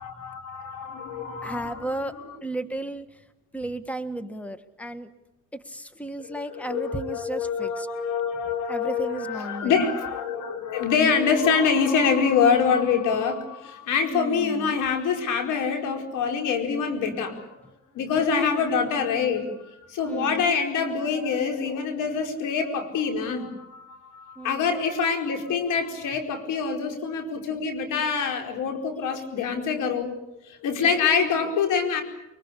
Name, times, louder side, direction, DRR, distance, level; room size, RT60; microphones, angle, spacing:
voice 1, 0.0-2.4 6.2-17.5 17.9-30.1 30.4-32.0, left 6 dB, 85° left, 5 dB, 4.8 m, -25 dB
voice 2, 1.1-3.0 3.5-5.1 5.5-7.9 8.7-9.8 14.1-14.8 18.3-18.7 20.0-20.5 24.4-24.7 30.9-31.4, right 1 dB, 5° left, 11 dB, 1.7 m, -34 dB
24.0 x 24.0 x 8.6 m, 0.87 s
cardioid pair, 90°, 30 cm